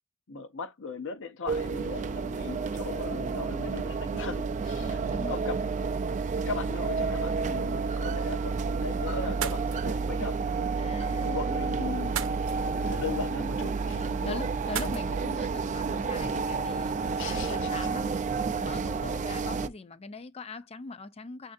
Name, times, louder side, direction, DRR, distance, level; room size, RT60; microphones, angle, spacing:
voice 1, 0.3-5.0 5.3-5.6 6.5-12.2 12.7-14.4 17.2-17.7, left 3 dB, 65° left, 0.7 m, -38 dB
sound 1, 1.5-19.7, right 4 dB, 35° right, 0.4 m, -30 dB
voice 2, 4.8-5.4 10.8-11.4 13.9-21.5, left 3 dB, 30° left, 0.5 m, -41 dB
sound 2, 9.2-17.6, right 8 dB, 65° right, 0.7 m, -42 dB
6.2 x 2.5 x 2.5 m
head